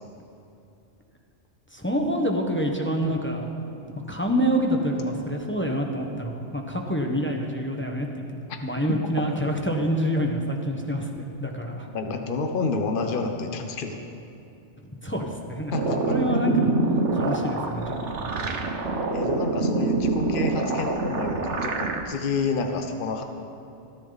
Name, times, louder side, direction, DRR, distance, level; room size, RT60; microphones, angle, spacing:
voice 1, 1.7-3.5 4.1-8.1 8.6-11.9 15.0-16.7 17.1-18.2, equal, 10° left, 1 dB, 1.2 m, -27 dB
voice 2, 11.9-14.0 15.7-16.1 19.1-23.2, left 4 dB, 50° left, 5 dB, 1.1 m, -29 dB
sound 1, 15.7-22.0, right 3 dB, 85° right, 1.4 m, -26 dB
28.0 x 10.0 x 4.1 m, 2.7 s
omnidirectional pair, 1.2 m